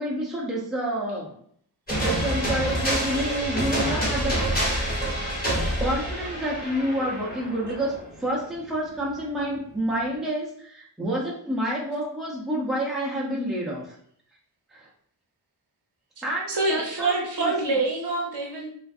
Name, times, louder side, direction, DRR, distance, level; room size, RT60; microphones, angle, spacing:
voice 1, 0.0-1.3 1.9-5.0 5.8-14.0 14.7-14.9 16.2-17.5, right 1 dB, ahead, -5 dB, 0.5 m, -29 dB
sound 1, 1.9-8.4, right 1 dB, 20° left, 1.1 m, -27 dB
voice 2, 16.5-18.7, right 3 dB, 65° right, -1 dB, 0.8 m, -26 dB
2.5 x 2.4 x 2.4 m, 0.65 s
wide cardioid pair, 135°, 43 cm